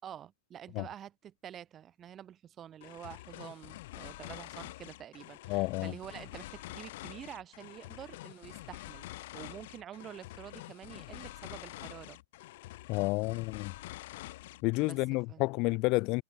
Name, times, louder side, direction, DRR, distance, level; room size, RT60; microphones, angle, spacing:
voice 1, 0.0-12.2 14.8-15.0 15.3-15.5, right 10 dB, 25° right, 4.7 m, -48 dB
sound 1, 2.8-15.0, left 18 dB, 60° left, 4.8 m, -47 dB
voice 2, 5.5-5.9 12.9-13.7 14.6-16.2, left 25 dB, 40° left, 2.2 m, -30 dB
supercardioid pair, 145°, 0 cm